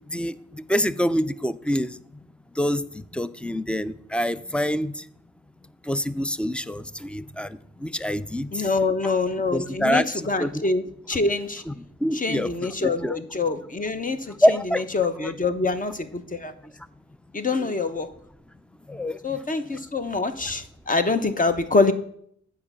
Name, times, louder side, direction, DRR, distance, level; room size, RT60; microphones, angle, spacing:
voice 1, 0.7-1.9 2.6-4.9 5.9-7.5 7.8-8.5 9.0-9.1 9.5-10.6 11.7-11.8 12.0-13.1 14.4-14.8 15.2-15.3 17.6-17.7 18.9-19.2, equal, 5° left, 15 dB, 0.4 m, -25 dB
voice 2, 8.5-11.6 12.1-14.3 14.9-16.5 17.3-18.1 19.2-21.9, left 3 dB, 30° left, 10 dB, 0.9 m, -25 dB
8.6 x 4.6 x 6.9 m, 0.66 s
cardioid pair, 70°, 29 cm